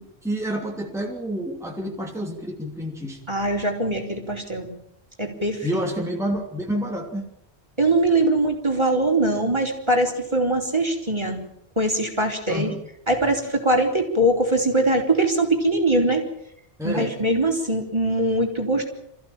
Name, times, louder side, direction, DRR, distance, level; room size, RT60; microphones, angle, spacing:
voice 1, 0.0-3.2 5.6-7.2 12.5-12.8 16.8-17.1, equal, 5° right, -1 dB, 3.1 m, -29 dB
voice 2, 3.3-4.7 5.2-5.8 7.8-11.4 11.8-12.7 13.1-16.2 16.8-18.9, right 1 dB, 25° right, 2 dB, 4.0 m, -22 dB
28.0 x 15.5 x 9.0 m, 0.79 s
omnidirectional pair, 1.1 m